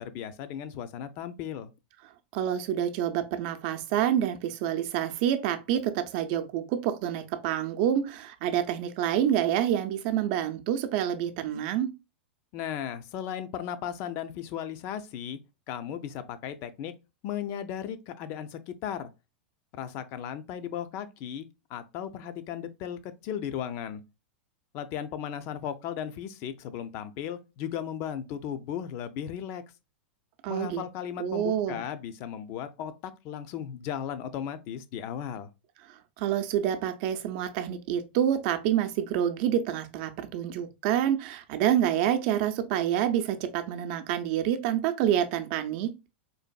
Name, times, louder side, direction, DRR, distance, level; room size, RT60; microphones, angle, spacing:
voice 1, 0.0-1.7 12.5-15.4 15.7-16.9 17.2-19.1 19.7-24.0 24.7-29.6 30.5-35.5, left 9 dB, 50° left, 0.5 m, -36 dB
voice 2, 2.3-11.9 30.4-30.8 31.2-31.8 36.2-45.9, right 10 dB, 55° right, 0.6 m, -27 dB
3.9 x 2.5 x 2.2 m
hypercardioid pair, 115°, 6 cm